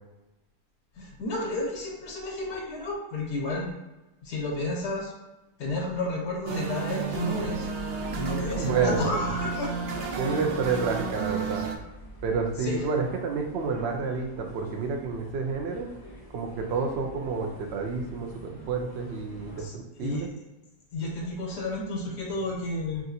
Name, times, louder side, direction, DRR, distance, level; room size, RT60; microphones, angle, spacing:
voice 1, 1.0-3.7 4.2-5.1 5.6-7.7 8.2-9.7 12.6-12.8 19.6-20.3 20.9-23.0, left 2 dB, 80° left, -3 dB, 1.7 m, -31 dB
sound 1, 6.5-11.8, right 5 dB, 90° right, 1.2 m, -32 dB
sound 2, 7.2-19.6, equal, 20° left, 0.6 m, -44 dB
voice 2, 8.6-9.2 10.2-11.6 12.2-15.9 16.3-20.3, right 5 dB, 60° right, 3 dB, 0.6 m, -29 dB
5.9 x 2.5 x 2.7 m, 1.0 s
omnidirectional pair, 1.8 m